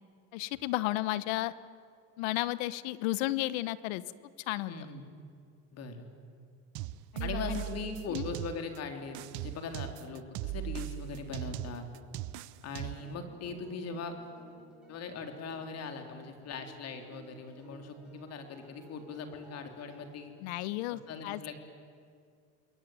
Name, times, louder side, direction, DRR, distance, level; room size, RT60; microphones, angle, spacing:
voice 1, 0.3-1.5 2.2-4.0 4.5-4.7 7.1-7.6 8.1-8.3 20.4-21.4, left 17 dB, 90° left, 17 dB, 1.0 m, -33 dB
voice 2, 4.7-5.0 5.7-6.1 7.2-11.9 12.6-14.2 14.9-20.3 20.9-21.5, left 4 dB, 55° left, 5 dB, 3.8 m, -40 dB
sound 1, 6.7-8.8 9.1-13.1, right 15 dB, 70° right, 1.0 m, -39 dB
sound 2, 12.7-20.1, right 2 dB, ahead, 7.1 m, -57 dB
27.5 x 22.0 x 9.4 m, 2.2 s
supercardioid pair, 110°, 31 cm